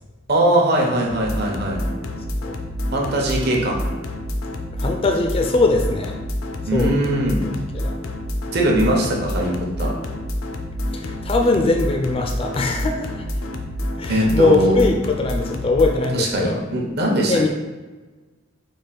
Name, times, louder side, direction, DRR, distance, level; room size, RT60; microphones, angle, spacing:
voice 1, 0.3-1.8 2.9-3.8 6.7-7.4 8.5-9.9 14.1-14.8 16.1-17.5, right 1 dB, 55° right, -1 dB, 0.8 m, -20 dB
sound 1, 1.1-16.1, left 1 dB, 85° left, 0.5 m, -28 dB
voice 2, 4.8-6.2 6.7-7.0 7.7-7.9 10.9-13.3 14.0-16.6 17.3-17.5, left 3 dB, 30° left, 3 dB, 0.3 m, -21 dB
4.8 x 2.4 x 4.0 m, 1.2 s
head